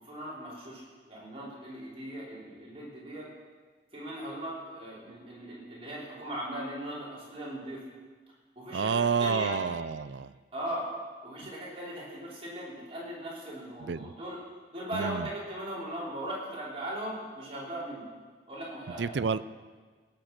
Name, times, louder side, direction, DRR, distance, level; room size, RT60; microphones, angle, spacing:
voice 1, 0.0-3.3 3.9-7.8 8.5-9.6 10.5-10.9 11.2-14.4 14.7-18.1 18.5-19.3, right 1 dB, 30° right, -7 dB, 5.1 m, -38 dB
voice 2, 8.7-10.3 11.4-11.5 13.8-14.1 14.9-15.3 19.0-19.4, right 5 dB, 70° right, 16 dB, 0.5 m, -29 dB
17.5 x 8.8 x 6.1 m, 1.4 s
head